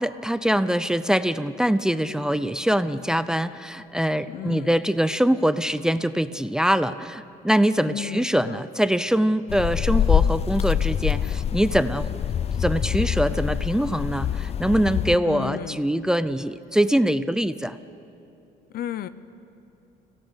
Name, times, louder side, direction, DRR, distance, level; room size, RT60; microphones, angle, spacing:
voice 1, 0.0-12.1 12.6-17.8, equal, 5° right, 13 dB, 0.6 m, -23 dB
voice 2, 4.3-4.8 7.9-8.6 15.2-15.8 18.7-19.1, left 11 dB, 65° left, 15 dB, 0.9 m, -33 dB
sound 1, 9.5-15.2, left 9 dB, 40° left, 0.5 m, -25 dB
25.5 x 17.0 x 8.2 m, 2.8 s
cardioid pair, 110°, 17 cm